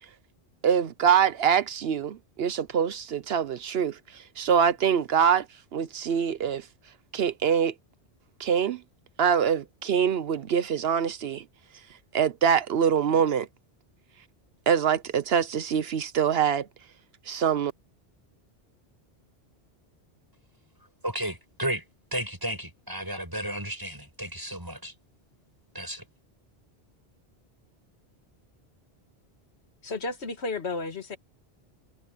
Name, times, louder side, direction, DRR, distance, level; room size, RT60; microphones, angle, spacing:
voice 1, 0.6-5.5 5.7-6.7 7.1-7.7 8.4-8.8 9.2-11.4 12.1-13.5 14.7-16.7 17.3-17.7, right 7 dB, 70° right, 0.9 m, -24 dB
voice 2, 21.0-21.8 22.1-24.9 25.7-26.0, right 1 dB, 20° right, 7.1 m, -33 dB
voice 3, 29.8-31.2, left 3 dB, 85° left, 1.9 m, -32 dB
omnidirectional pair, 1.1 m